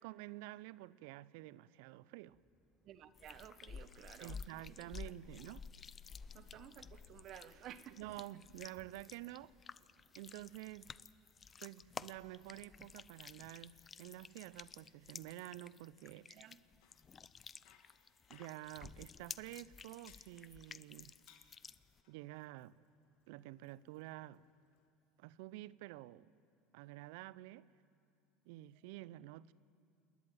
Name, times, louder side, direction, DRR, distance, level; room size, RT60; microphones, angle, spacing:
voice 1, 0.0-2.4 4.2-5.6 8.0-9.5 10.1-10.9 11.6-16.3 18.3-21.1 22.1-22.8 23.3-24.4 25.2-26.3 26.7-27.7 28.5-29.5, right 16 dB, 70° right, 0.5 m, -50 dB
sound 1, 2.2-15.6, equal, ahead, 1.6 m, -77 dB
voice 2, 2.8-4.9 6.3-8.1 16.3-16.6, right 11 dB, 55° right, 1.0 m, -54 dB
sound 2, 3.1-22.0, left 6 dB, 30° left, 0.6 m, -53 dB
Bicycle, 16.5-24.9, left 8 dB, 65° left, 2.2 m, -71 dB
28.5 x 10.5 x 9.3 m
hypercardioid pair, 85°, 0 cm